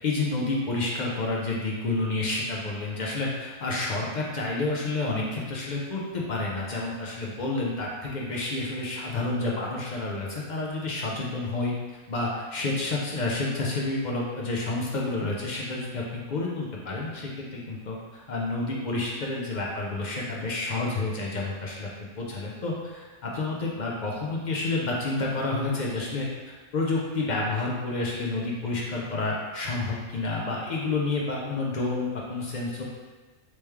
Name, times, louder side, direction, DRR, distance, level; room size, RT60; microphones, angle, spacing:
voice 1, 0.0-11.7 12.1-21.9 22.2-26.3 26.7-32.8, left 2 dB, 55° left, -3 dB, 0.5 m, -29 dB
3.1 x 3.0 x 3.4 m, 1.3 s
omnidirectional pair, 1.2 m